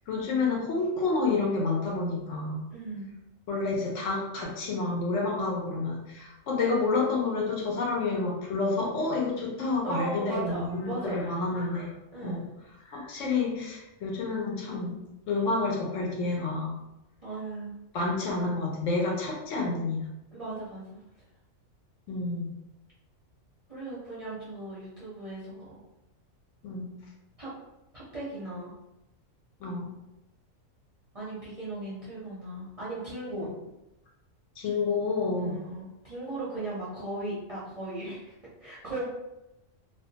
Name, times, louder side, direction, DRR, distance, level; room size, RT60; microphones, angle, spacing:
voice 1, 0.1-2.6 3.5-11.9 12.2-12.4 12.8-15.0 15.3-16.8 17.9-20.1 22.1-22.5 26.6-26.9 29.6-29.9 34.6-35.6, left 3 dB, 70° left, -2 dB, 1.0 m, -29 dB
voice 2, 2.7-3.1 9.8-11.2 12.1-12.5 17.2-17.7 20.3-20.8 23.7-25.8 27.4-27.5 27.9-28.7 31.1-33.5 35.4-39.1, right 2 dB, 40° right, -9 dB, 0.5 m, -37 dB
2.4 x 2.2 x 2.7 m, 0.93 s
omnidirectional pair, 1.4 m